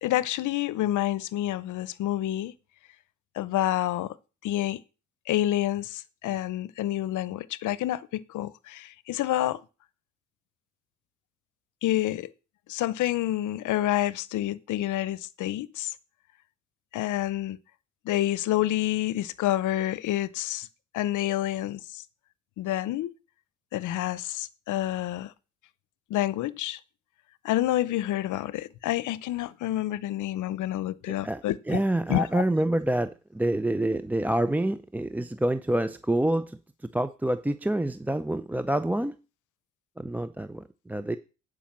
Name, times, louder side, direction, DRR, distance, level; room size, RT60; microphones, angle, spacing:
voice 1, 0.0-2.5 3.4-4.2 4.4-4.8 5.3-9.6 11.8-12.3 12.7-15.9 16.9-17.6 18.0-20.7 20.9-22.0 22.6-23.1 23.7-25.3 26.1-26.8 27.4-31.8 32.1-32.4, left 14 dB, 80° left, 0.7 m, -28 dB
voice 2, 31.2-36.6 36.9-39.2 40.0-41.2, right 1 dB, 5° right, 0.4 m, -27 dB
10.5 x 5.1 x 7.2 m
cardioid pair, 90°, 30 cm